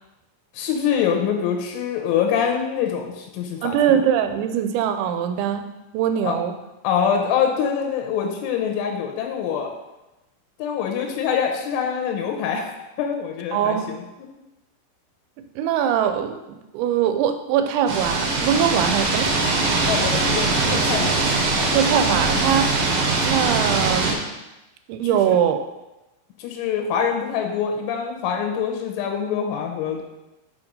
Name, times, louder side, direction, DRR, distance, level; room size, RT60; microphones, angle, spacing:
voice 1, 0.5-3.8 6.2-6.3 6.8-9.7 10.6-12.7 13.0-14.3 19.9-21.2 25.1-25.3 26.4-30.0, left 7 dB, 90° left, 1 dB, 3.4 m, -25 dB
voice 2, 3.6-5.7 5.9-6.5 13.5-13.9 15.6-19.7 21.7-24.2 24.9-25.7, right 9 dB, 80° right, 8 dB, 2.9 m, -22 dB
sound 1, 17.9-24.1, right 3 dB, 65° right, 2.4 m, -21 dB
7.5 x 4.7 x 5.3 m, 0.99 s
omnidirectional pair, 5.4 m